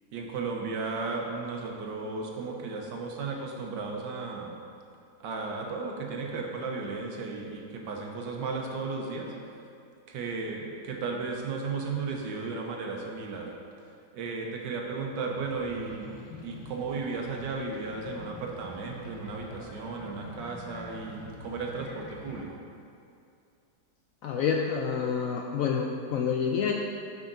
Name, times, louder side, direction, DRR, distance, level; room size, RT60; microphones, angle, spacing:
voice 1, 0.1-4.5 5.2-9.3 10.1-13.5 14.1-22.5, right 4 dB, 85° right, 0 dB, 1.6 m, -35 dB
sound 1, 15.3-22.4, left 2 dB, 50° left, 1.3 m, -46 dB
voice 2, 24.2-26.7, left 6 dB, 75° left, 1 dB, 0.8 m, -28 dB
9.9 x 5.7 x 3.9 m, 2.5 s
omnidirectional pair, 1.9 m